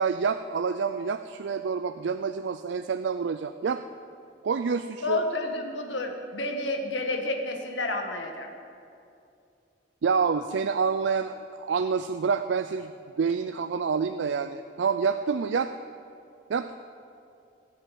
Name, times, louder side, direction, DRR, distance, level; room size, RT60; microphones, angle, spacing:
voice 1, 0.0-3.8 4.4-5.2 10.0-12.9 13.2-15.7 16.5-16.7, right 5 dB, 75° right, 10 dB, 0.4 m, -27 dB
voice 2, 5.0-8.5, left 2 dB, 80° left, 4 dB, 1.7 m, -30 dB
18.5 x 7.6 x 8.3 m, 2.6 s
head